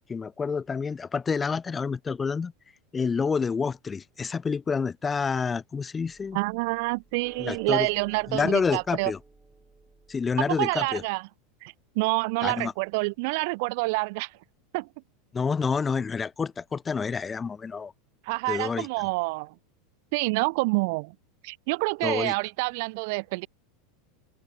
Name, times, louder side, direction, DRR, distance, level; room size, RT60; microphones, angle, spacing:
voice 1, 0.1-2.5 2.9-6.4 7.4-7.9 8.3-9.2 10.1-11.0 12.4-12.7 15.3-17.9 18.5-18.9 22.0-22.3, left 5 dB, 20° left, 0.7 m, -28 dB
sound 1, 6.0-11.1, right 3 dB, 10° right, 2.0 m, -54 dB
voice 2, 6.3-9.1 10.6-11.2 11.6-14.3 14.7-14.9 18.3-19.5 20.1-21.1 21.4-23.5, right 28 dB, 55° right, 0.7 m, -27 dB
open air
figure-of-eight pair, 85°, 0 cm